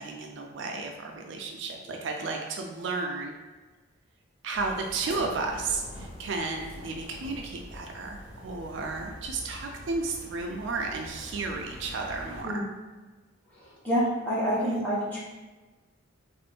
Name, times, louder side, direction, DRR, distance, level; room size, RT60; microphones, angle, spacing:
voice 1, 0.0-3.3 4.4-12.6 14.7-14.8, right 3 dB, 65° right, 2 dB, 0.4 m, -33 dB
sound 1, 4.5-12.4, equal, 10° right, 0.8 m, -44 dB
voice 2, 13.8-15.2, equal, 10° left, -10 dB, 1.2 m, -27 dB
3.3 x 2.5 x 3.3 m, 1.3 s
head